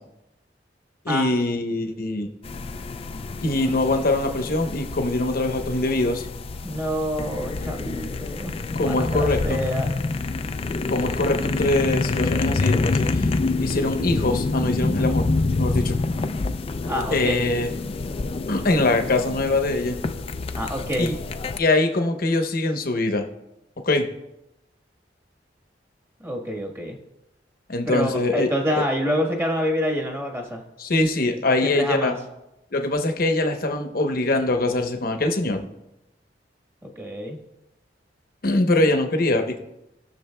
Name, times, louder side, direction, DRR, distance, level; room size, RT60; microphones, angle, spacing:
voice 1, 1.0-2.3 3.4-6.2 8.7-9.6 10.9-13.3 13.6-15.3 15.6-16.0 17.1-17.7 18.5-20.0 21.0-21.2 21.6-23.3 23.8-24.1 27.7-28.5 30.8-32.1 32.7-35.6 38.4-39.6, left 2 dB, 55° left, 5 dB, 0.9 m, -23 dB
sound 1, 2.4-21.6, left 3 dB, 30° left, 0.4 m, -27 dB
voice 2, 6.6-9.9 16.9-17.4 20.5-21.2 26.2-27.0 27.9-30.6 31.5-32.1 36.8-37.4, equal, 15° right, 1 dB, 1.3 m, -27 dB
18.5 x 6.6 x 2.2 m, 0.92 s
head